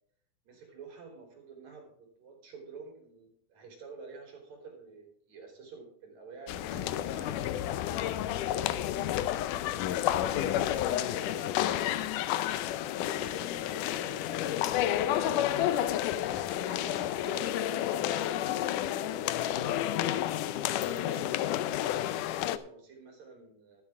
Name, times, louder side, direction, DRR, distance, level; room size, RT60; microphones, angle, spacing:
voice 1, 0.4-7.5 8.5-9.7 10.3-12.1 12.9-20.3 20.9-23.8, right 4 dB, 60° right, 2 dB, 4.8 m, -49 dB
sound 1, 6.5-22.6, left 12 dB, 85° left, 2.2 m, -30 dB
12.5 x 12.0 x 3.6 m, 0.64 s
omnidirectional pair, 3.6 m